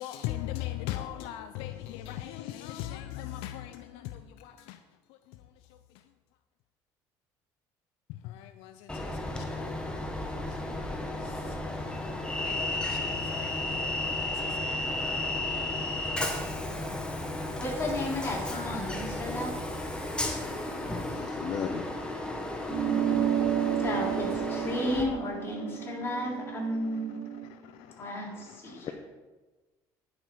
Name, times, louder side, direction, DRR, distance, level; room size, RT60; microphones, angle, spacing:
voice 1, 0.0-4.8 8.1-9.7 10.1-11.9 12.4-14.9 15.7-16.0 16.3-16.4 20.3-23.8 25.8-25.9 26.9-27.0 27.5-28.9, left 13 dB, 80° left, 0.4 m, -42 dB
Train, 8.9-25.0, left 1 dB, 10° left, 1.4 m, -33 dB
voice 2, 17.6-19.7 22.8-23.3 23.8-28.9, left 1 dB, 25° left, 3.3 m, -34 dB
voice 3, 21.1-21.8, left 6 dB, 50° left, 0.8 m, -34 dB
sound 1, 22.7-27.5, right 10 dB, 60° right, 0.4 m, -31 dB
10.0 x 5.8 x 4.6 m
supercardioid pair, 85°, 9 cm